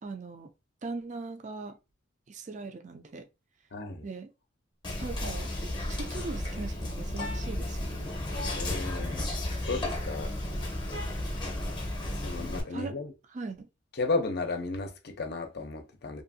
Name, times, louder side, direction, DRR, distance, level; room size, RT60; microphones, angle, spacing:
voice 1, 0.0-0.5 0.8-1.8 2.3-3.3 4.0-4.3 5.0-5.5 5.9-8.2 12.7-12.9 13.3-13.7, right 3 dB, 40° right, 0.4 m, -39 dB
voice 2, 3.7-4.1 8.5-9.2 9.7-10.3 12.2-13.1 14.0-16.2, left 3 dB, 60° left, 0.6 m, -33 dB
Whispering, 4.8-12.6, left 1 dB, 25° left, 0.7 m, -33 dB
2.7 x 2.4 x 2.6 m
head